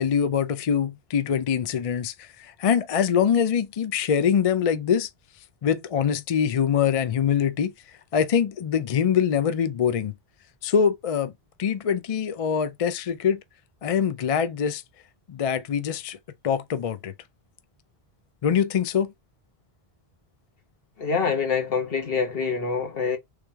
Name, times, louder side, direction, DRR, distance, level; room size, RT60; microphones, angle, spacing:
voice 1, 0.0-5.1 5.6-7.7 8.1-10.1 10.6-11.3 11.6-13.4 13.8-14.8 15.3-16.2 16.4-17.1 18.4-19.1, left 7 dB, 50° left, 0.4 m, -24 dB
voice 2, 21.0-23.2, left 5 dB, 65° left, 1.4 m, -25 dB
3.6 x 3.3 x 4.4 m
omnidirectional pair, 1.0 m